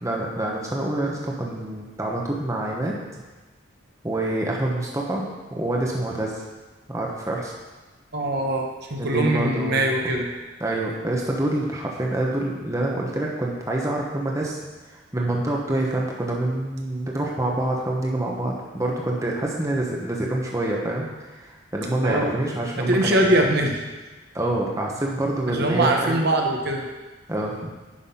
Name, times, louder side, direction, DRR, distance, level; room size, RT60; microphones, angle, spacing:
voice 1, 0.0-3.0 4.0-5.2 5.5-6.4 6.9-7.5 9.0-10.1 10.6-14.6 14.9-23.4 24.3-26.3 27.3-27.7, right 1 dB, 15° right, -2 dB, 1.2 m, -26 dB
voice 2, 8.1-8.6 8.9-10.3 22.0-22.3 22.7-23.8 25.5-26.8, right 1 dB, 55° right, 1 dB, 1.2 m, -22 dB
10.0 x 5.9 x 5.8 m, 1.3 s
head